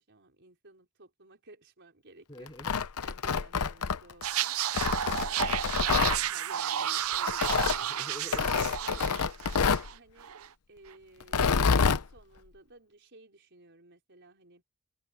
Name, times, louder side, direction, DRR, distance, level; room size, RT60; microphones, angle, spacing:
voice 1, 0.0-2.5 3.0-4.6 5.0-8.1 8.8-10.4 10.7-14.6, right 2 dB, 55° right, 4.8 m, -55 dB
voice 2, 2.3-2.9 6.0-6.3 7.8-9.0, left 1 dB, 20° left, 5.5 m, -47 dB
Tearing, 2.5-4.2 4.7-6.2 7.3-7.8 8.3-9.9 11.2-12.0, left 5 dB, 85° left, 0.8 m, -27 dB
sound 1, 4.2-9.9 10.2-10.5, right 10 dB, 75° right, 0.7 m, -32 dB
head